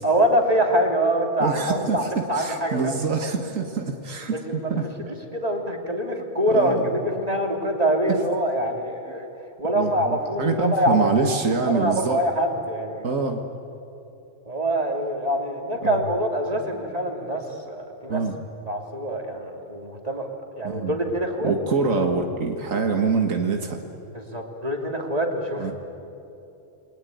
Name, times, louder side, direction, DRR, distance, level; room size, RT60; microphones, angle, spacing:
voice 1, 0.0-3.3 4.3-4.7 5.0-9.3 9.6-13.2 14.5-18.2 18.7-21.5 24.1-25.7, right 1 dB, 30° right, 2 dB, 3.1 m, -25 dB
voice 2, 1.4-5.1 6.5-7.0 8.1-8.2 9.7-12.2 13.0-13.4 15.8-16.0 18.1-18.4 20.6-21.1 21.4-23.8 25.6-25.7, right 4 dB, 85° right, 3 dB, 2.0 m, -25 dB
29.0 x 22.0 x 9.4 m, 2.9 s
omnidirectional pair, 1.3 m